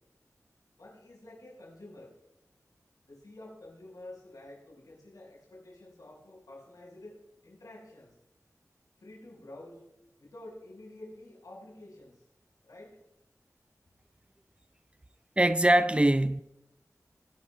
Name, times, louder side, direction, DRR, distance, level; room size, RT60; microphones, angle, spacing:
voice 1, 0.8-2.1 3.1-8.1 9.0-9.8 10.2-12.3 12.6-13.0, left 1 dB, 85° left, 5.6 m, -49 dB
voice 2, 15.4-16.4, right 1 dB, 20° right, 0.4 m, -22 dB
22.5 x 12.0 x 2.5 m
wide cardioid pair, 80°, 6 cm